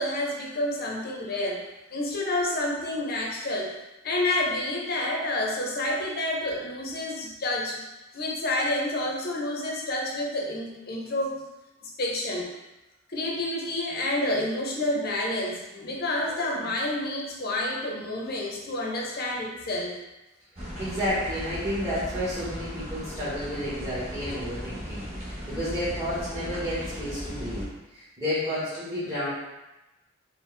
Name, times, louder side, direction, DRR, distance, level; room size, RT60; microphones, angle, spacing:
voice 1, 0.0-1.6 1.9-3.7 4.0-7.8 8.1-11.4 11.8-12.5 13.1-19.9 25.5-25.6, left 1 dB, 50° left, -2 dB, 0.7 m, -29 dB
voice 2, 20.5-29.3, equal, 15° right, -13 dB, 1.2 m, -31 dB
sound 1, 20.6-27.7, equal, 35° right, 0.9 m, -37 dB
4.3 x 2.2 x 3.3 m, 1.0 s
head